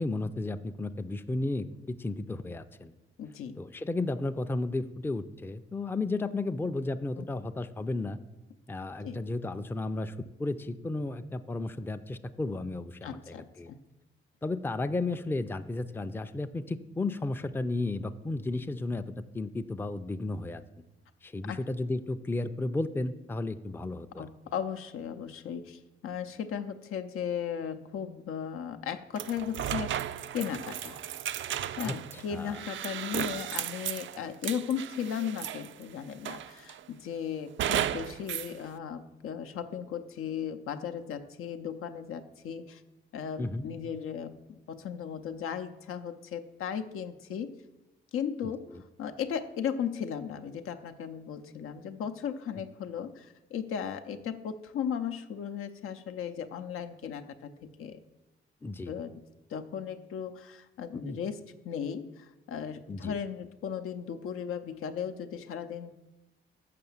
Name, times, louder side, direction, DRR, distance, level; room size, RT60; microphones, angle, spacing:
voice 1, 0.0-2.9 3.6-8.2 8.7-10.1 10.4-13.7 14.4-19.0 19.3-20.6 21.2-24.3 31.8-31.9 32.3-32.6 43.4-43.7 58.6-58.9 61.0-61.2 62.9-63.2, left 2 dB, 10° left, 9 dB, 0.4 m, -33 dB
voice 2, 3.2-3.6 7.2-7.3 9.0-9.2 13.0-13.8 21.5-21.6 24.2-30.0 30.3-31.0 31.8-42.8 43.1-47.6 48.1-48.7 49.0-58.0 58.9-59.2 59.5-65.9, left 8 dB, 80° left, 8 dB, 0.6 m, -36 dB
sound 1, 29.2-35.8 36.3-36.8 37.6-38.5, right 10 dB, 65° right, 0.4 m, -35 dB
6.8 x 5.8 x 7.1 m, 1.0 s
cardioid pair, 80°, 21 cm